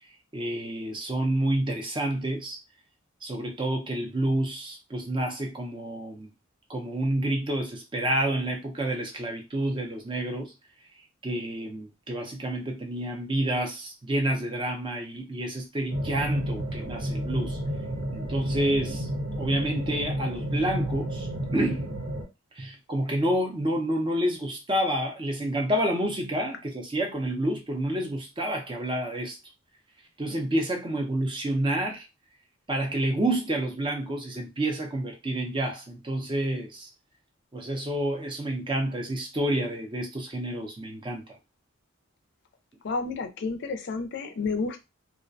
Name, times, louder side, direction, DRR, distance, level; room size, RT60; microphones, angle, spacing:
voice 1, 0.3-2.6 3.2-6.3 6.7-10.5 11.2-17.6 18.1-19.1 19.4-21.9 22.5-29.4 30.2-32.1 32.7-36.9 37.5-41.2, right 1 dB, 20° right, 0.5 m, -29 dB
sound 1, 15.9-22.2, equal, 70° right, 1.0 m, -31 dB
voice 2, 42.8-44.8, left 4 dB, 50° left, 0.4 m, -30 dB
2.3 x 2.1 x 2.5 m
head